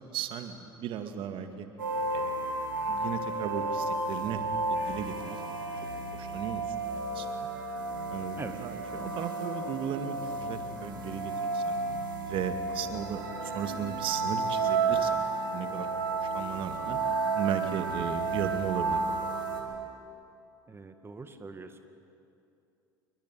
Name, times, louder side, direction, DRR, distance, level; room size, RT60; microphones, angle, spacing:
voice 1, 0.0-1.7 2.1-2.4 2.9-4.4 4.7-5.4 6.1-6.8 7.1-7.5 8.1-11.8 12.2-15.3 15.5-17.0 17.3-19.1, right 8 dB, 55° right, 7 dB, 2.2 m, -36 dB
sound 1, 1.8-19.6, right 3 dB, 90° right, 4.6 m, -32 dB
voice 2, 20.7-21.8, right 4 dB, 20° right, 7 dB, 2.1 m, -42 dB
28.5 x 22.5 x 9.3 m, 2.6 s
hypercardioid pair, 70°, 11 cm